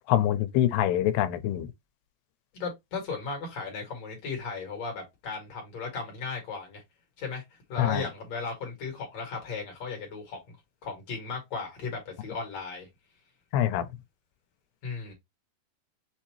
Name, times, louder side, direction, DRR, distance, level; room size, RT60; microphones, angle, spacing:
voice 1, 0.1-1.7 7.8-8.1 13.5-13.9, left 12 dB, 90° left, 2.7 m, -25 dB
voice 2, 2.5-6.8 7.2-7.4 7.7-10.4 10.8-12.9 14.8-15.1, left 4 dB, 50° left, 2.3 m, -36 dB
6.6 x 2.7 x 2.9 m
omnidirectional pair, 4.7 m